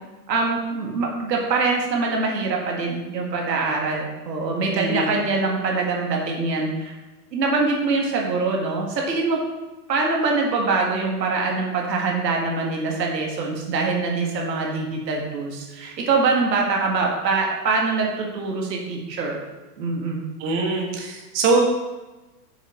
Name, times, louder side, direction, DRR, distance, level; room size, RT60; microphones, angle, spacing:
voice 1, 0.3-7.0 7.3-9.4 9.9-19.4 19.8-20.2, right 3 dB, 85° right, 0 dB, 1.9 m, -24 dB
voice 2, 4.7-5.1 20.4-21.6, right 3 dB, 45° right, 0 dB, 1.7 m, -22 dB
6.8 x 6.7 x 4.4 m, 1.1 s
hypercardioid pair, 125°, 49 cm